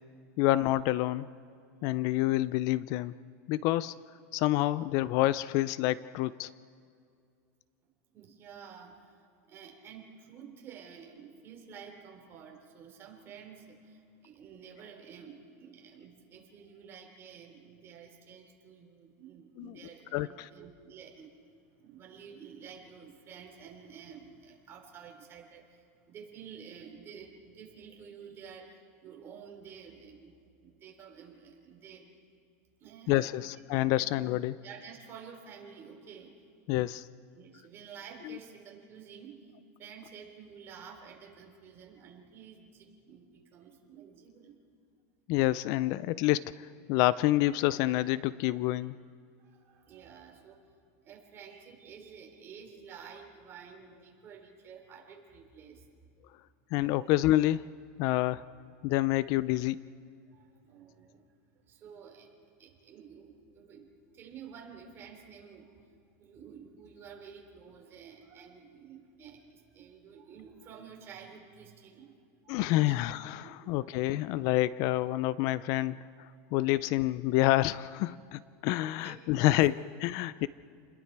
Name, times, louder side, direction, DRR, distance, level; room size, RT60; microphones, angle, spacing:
voice 1, 0.4-1.3 1.8-3.2 3.5-3.9 4.3-6.5 19.6-19.7 20.1-20.5 33.1-34.6 36.7-37.1 38.3-38.4 45.3-49.0 56.7-57.6 58.0-58.5 58.8-59.8 72.5-76.0 76.5-80.5, left 16 dB, 50° left, 18 dB, 0.4 m, -28 dB
voice 2, 8.1-9.2 9.5-21.3 21.8-32.1 32.8-33.5 34.0-34.1 34.6-36.3 37.3-39.5 39.8-44.6 49.4-50.7 51.0-55.9 56.7-57.1 60.3-61.2 61.5-62.3 62.6-65.7 66.2-72.1 72.4-73.0 73.4-74.2 78.8-79.6, right 7 dB, 30° right, 1 dB, 3.8 m, -51 dB
29.5 x 21.0 x 4.7 m, 2.4 s
supercardioid pair, 150°, 8 cm